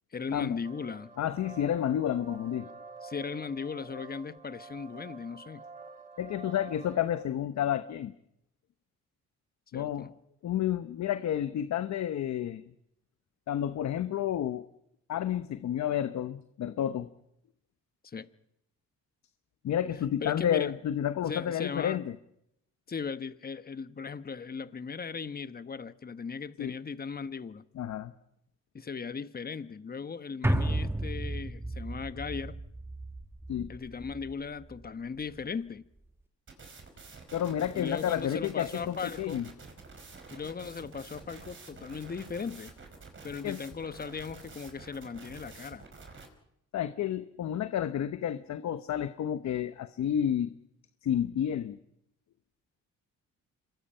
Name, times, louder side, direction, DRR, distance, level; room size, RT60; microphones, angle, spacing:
voice 1, 0.1-1.1 3.0-5.6 9.7-10.1 18.0-18.3 20.2-20.7 21.2-22.0 22.9-27.6 28.7-32.6 33.7-35.8 37.7-39.4 40.3-42.7 43.2-45.8, left 5 dB, 30° left, 1.2 m, -38 dB
sound 1, 0.6-7.2, right 4 dB, 25° right, 3.0 m, -48 dB
voice 2, 1.2-2.7 6.2-8.1 9.7-10.1 10.4-12.6 13.5-14.6 15.1-17.1 19.6-22.2 26.6-26.7 27.8-28.1 33.5-33.7 37.3-39.5 43.4-43.6 46.7-50.5 51.0-51.8, left 10 dB, 65° left, 1.0 m, -30 dB
sound 2, 30.4-34.9 35.2-35.3, right 1 dB, 10° right, 1.4 m, -33 dB
sound 3, 36.5-46.3, right 4 dB, 40° right, 5.3 m, -49 dB
26.5 x 22.5 x 5.7 m
cardioid pair, 90°, 30 cm